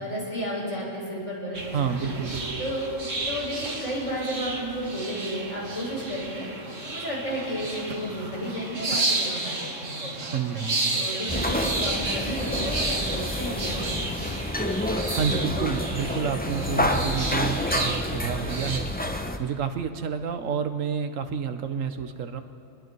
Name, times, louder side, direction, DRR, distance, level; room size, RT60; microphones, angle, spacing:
voice 1, 0.0-2.2 2.6-6.5 6.8-10.3 10.9-14.3, equal, 75° left, -6 dB, 7.2 m, -32 dB
sound 1, 1.5-18.8, right 2 dB, 70° right, 2.3 m, -32 dB
voice 2, 1.7-2.6 10.2-11.1 15.1-18.9 19.4-22.4, right 7 dB, 90° right, 8 dB, 1.4 m, -29 dB
sound 2, 11.3-19.4, left 1 dB, 10° left, 0.8 m, -29 dB
27.0 x 21.0 x 4.7 m, 2.6 s
omnidirectional pair, 1.3 m